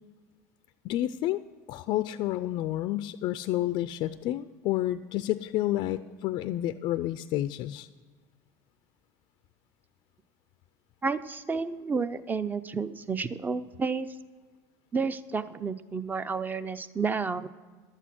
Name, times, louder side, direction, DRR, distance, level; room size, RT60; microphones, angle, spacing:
voice 1, 0.8-1.4 1.7-7.9, left 14 dB, 55° left, 13 dB, 0.4 m, -30 dB
voice 2, 11.0-14.1 14.9-17.5, right 4 dB, 20° right, 13 dB, 0.6 m, -31 dB
11.5 x 8.2 x 6.0 m, 1.5 s
hypercardioid pair, 90°, 9 cm